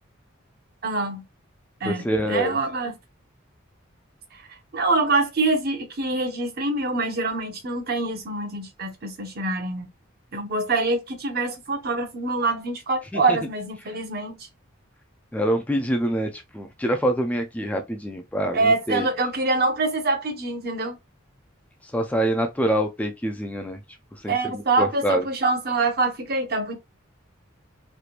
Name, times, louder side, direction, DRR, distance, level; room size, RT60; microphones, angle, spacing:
voice 1, 0.8-1.2 1.8-3.0 4.7-9.9 10.3-14.4 18.5-21.0 24.2-26.7, right 3 dB, 50° right, 0.8 m, -25 dB
voice 2, 1.8-2.6 13.1-13.4 15.3-19.1 21.8-23.8 24.2-25.2, right 1 dB, 5° left, 0.3 m, -25 dB
3.3 x 2.9 x 2.4 m
head